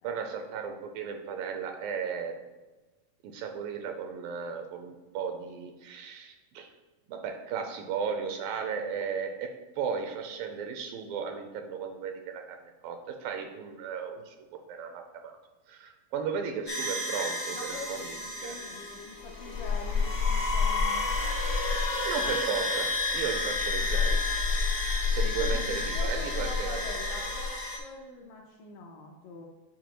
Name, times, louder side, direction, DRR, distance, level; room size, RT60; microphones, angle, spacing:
voice 1, 0.0-2.4 3.2-6.7 7.1-12.6 12.8-14.4 14.7-15.3 15.7-18.2 18.4-18.6 22.1-24.2 25.1-26.8, right 6 dB, 80° right, 5 dB, 2.2 m, -35 dB
sound 1, 16.7-27.8, left 3 dB, 35° left, 0.7 m, -29 dB
voice 2, 17.5-21.1 25.4-29.5, left 3 dB, 75° left, 1 dB, 2.1 m, -44 dB
10.5 x 4.6 x 3.0 m, 1.2 s
omnidirectional pair, 4.3 m